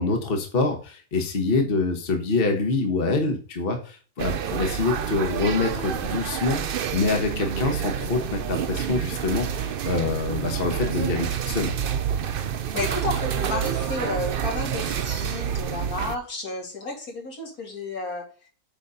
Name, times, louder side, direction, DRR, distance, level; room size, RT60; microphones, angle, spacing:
voice 1, 0.0-11.7, left 3 dB, 40° left, 4 dB, 1.4 m, -25 dB
sound 1, 4.2-16.2, right 8 dB, 55° right, 0.6 m, -28 dB
voice 2, 12.7-18.2, left 2 dB, 80° left, 0 dB, 3.1 m, -32 dB
9.0 x 4.1 x 5.5 m, 0.39 s
omnidirectional pair, 1.5 m